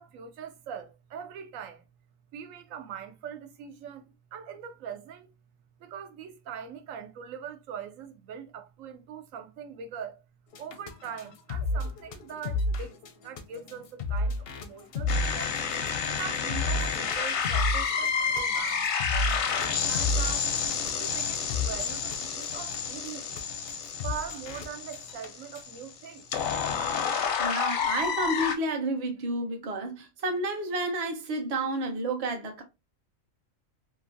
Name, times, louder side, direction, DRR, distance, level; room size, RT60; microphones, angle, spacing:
voice 1, 0.0-1.9 2.3-5.3 5.8-10.2 10.6-13.0 13.2-15.6 16.1-20.5 21.0-23.4 24.0-26.3, right 7 dB, 75° right, 1.0 m, -42 dB
sound 1, 10.5-22.2 22.4-22.8 23.1-23.2 23.4-23.5 23.7-23.8 24.0-24.7 24.9-25.3 25.6-25.7, left 2 dB, 60° left, 0.6 m, -32 dB
sound 2, 15.1-28.5, left 6 dB, 90° left, 1.0 m, -30 dB
voice 2, 27.4-32.6, right 1 dB, 40° right, 0.6 m, -30 dB
3.0 x 2.5 x 2.5 m
omnidirectional pair, 1.4 m